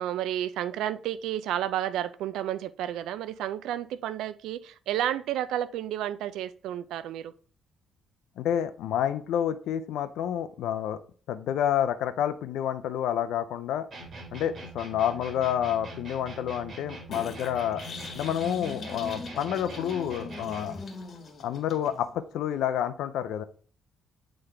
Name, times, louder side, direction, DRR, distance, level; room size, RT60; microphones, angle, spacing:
voice 1, 0.0-7.3, right 11 dB, 85° right, 0.4 m, -31 dB
voice 2, 8.4-11.0 11.3-13.9 14.3-17.8 18.1-20.8 21.4-23.4, left 10 dB, 85° left, 0.5 m, -29 dB
sound 1, 13.9-20.9, right 2 dB, 50° right, 2.5 m, -43 dB
sound 2, 17.1-22.1, left 3 dB, 45° left, 1.8 m, -41 dB
8.6 x 3.9 x 3.3 m
cardioid pair, 90°, 0 cm